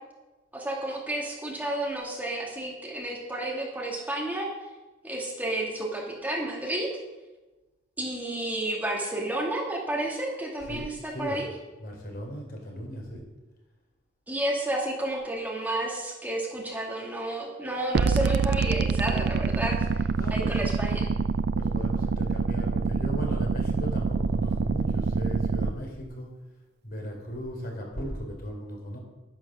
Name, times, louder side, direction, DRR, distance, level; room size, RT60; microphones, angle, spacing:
voice 1, 0.5-4.5 5.0-7.0 8.0-11.5 14.3-21.1, right 1 dB, 10° right, -2 dB, 2.2 m, -31 dB
voice 2, 10.6-11.5 11.8-13.2 20.2-20.6 21.5-26.3 26.8-29.0, equal, 50° left, 1 dB, 3.9 m, -36 dB
sound 1, 17.9-25.7, right 5 dB, 55° right, 0.4 m, -26 dB
11.0 x 11.0 x 6.3 m, 1.1 s
head